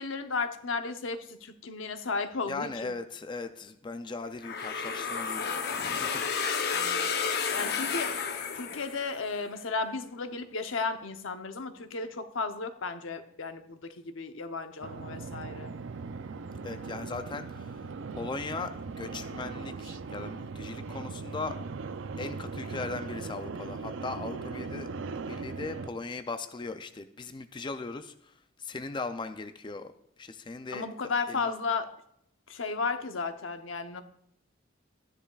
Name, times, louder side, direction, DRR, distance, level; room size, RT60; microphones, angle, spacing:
voice 1, 0.0-2.9 6.7-7.0 7.5-8.1 8.5-15.7 30.7-31.9 32.5-34.0, left 4 dB, 85° left, 8 dB, 0.8 m, -34 dB
voice 2, 2.5-6.6 16.6-17.9 18.2-21.6 22.2-29.9 30.2-31.5, left 3 dB, 25° left, 8 dB, 0.4 m, -39 dB
sound 1, 4.4-9.3, left 6 dB, 55° left, 0.8 m, -31 dB
sound 2, 14.8-25.9, right 4 dB, 75° right, 0.5 m, -39 dB
13.0 x 10.0 x 2.4 m, 0.75 s
head